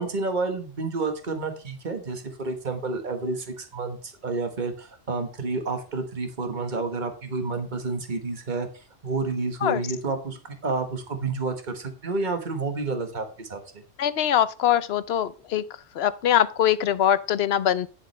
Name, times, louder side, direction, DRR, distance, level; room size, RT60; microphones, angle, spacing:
voice 1, 0.0-8.7 9.0-13.6, right 3 dB, 45° right, 1.6 m, -30 dB
voice 2, 14.0-15.6 16.0-17.9, left 10 dB, 65° left, 0.9 m, -22 dB
11.0 x 7.5 x 3.3 m
omnidirectional pair, 1.2 m